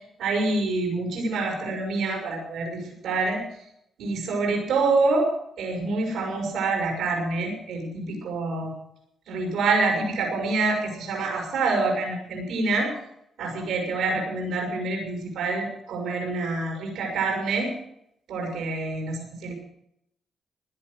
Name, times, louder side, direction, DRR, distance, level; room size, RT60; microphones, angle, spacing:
voice 1, 0.2-3.4 4.0-5.3 5.6-8.7 9.3-12.9 13.4-17.7 18.3-19.5, right 3 dB, 90° right, -1 dB, 5.4 m, -26 dB
16.5 x 10.5 x 6.5 m, 0.74 s
cardioid pair, 75°, 0 cm